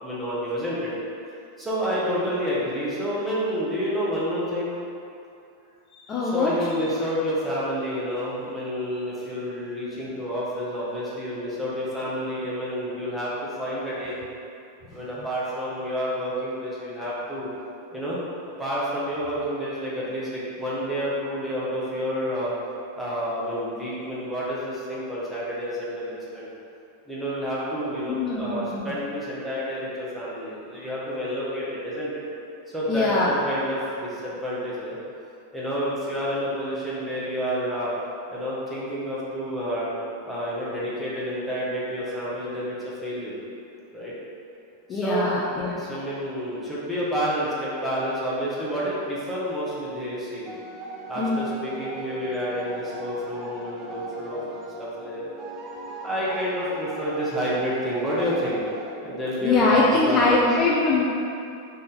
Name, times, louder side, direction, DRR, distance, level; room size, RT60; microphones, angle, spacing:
voice 1, 0.0-0.9 1.6-4.7 6.2-14.2 14.9-17.5 17.9-18.2 18.6-22.5 22.9-26.5 27.1-32.2 32.7-35.0 35.5-37.9 38.3-39.9 40.2-43.4 43.9-44.1 44.9-45.3 45.8-50.5 51.1-55.3 56.0-58.6 59.0-60.4, equal, 5° right, -9 dB, 1.0 m, -29 dB
voice 2, 6.0-6.5 28.1-28.9 32.9-33.3 44.9-45.8 51.2-51.4 59.4-61.1, left 3 dB, 30° left, -5 dB, 0.4 m, -22 dB
sound 1, 50.5-58.9, right 1 dB, 20° right, 0.6 m, -38 dB
3.7 x 2.7 x 3.9 m, 2.6 s
figure-of-eight pair, 90°, 0 cm